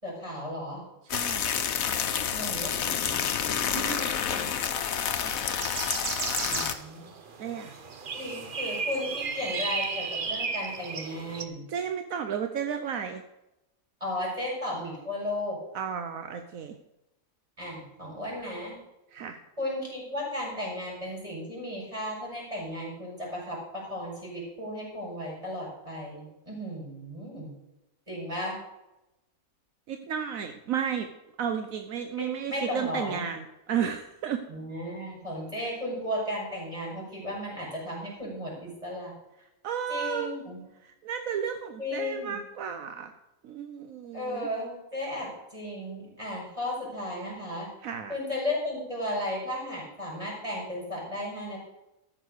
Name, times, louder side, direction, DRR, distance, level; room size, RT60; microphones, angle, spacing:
voice 1, 0.0-0.8 2.3-3.4 6.4-7.1 8.1-11.7 14.0-15.6 17.6-18.8 19.6-27.5 28.1-28.6 32.2-33.2 34.5-39.1 39.9-40.6 41.8-42.4 44.1-47.7 48.1-51.6, left 1 dB, 25° right, -4 dB, 5.8 m, -35 dB
voice 2, 1.0-1.5 3.7-4.6 7.4-7.8 11.7-13.2 15.7-16.8 19.1-19.4 29.9-31.1 31.4-34.4 39.6-40.3 40.8-43.1 43.4-44.5 47.8-48.2, right 8 dB, 75° right, 7 dB, 1.2 m, -33 dB
sound 1, 1.1-6.7, left 8 dB, 80° left, 1.3 m, -29 dB
sound 2, 5.3-11.4, right 4 dB, 45° right, 1.0 m, -34 dB
14.0 x 6.4 x 6.5 m, 0.94 s
omnidirectional pair, 1.4 m